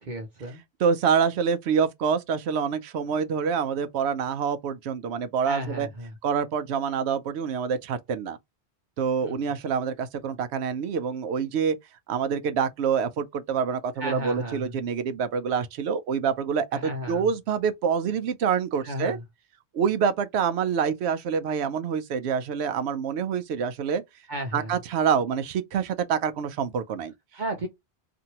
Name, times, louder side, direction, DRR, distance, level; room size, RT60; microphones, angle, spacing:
voice 1, 0.0-0.6 5.4-6.1 9.2-9.4 14.0-14.7 16.7-17.3 18.8-19.2 24.3-24.7 27.3-27.7, right 1 dB, 50° right, 0.8 m, -33 dB
voice 2, 0.8-5.9 6.2-8.4 9.0-11.8 12.1-19.2 19.7-24.0 24.5-27.1, right 6 dB, 80° right, 0.8 m, -26 dB
2.8 x 2.6 x 2.8 m
omnidirectional pair, 1.1 m